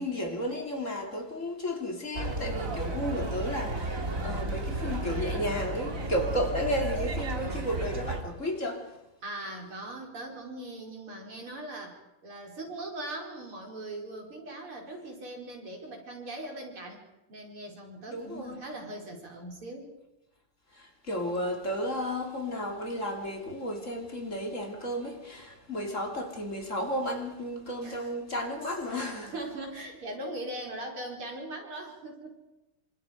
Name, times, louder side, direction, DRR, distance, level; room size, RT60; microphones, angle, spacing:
voice 1, 0.0-9.0 18.1-18.7 20.7-29.3, equal, 35° left, 3.2 m, -33 dB
sound 1, 2.1-8.2, right 2 dB, 40° right, 2.6 m, -33 dB
voice 2, 9.2-17.0 17.3-19.9 27.8-28.1 28.9-32.4, right 1 dB, 80° right, 5.5 m, -40 dB
28.0 x 26.0 x 5.2 m
omnidirectional pair, 2.3 m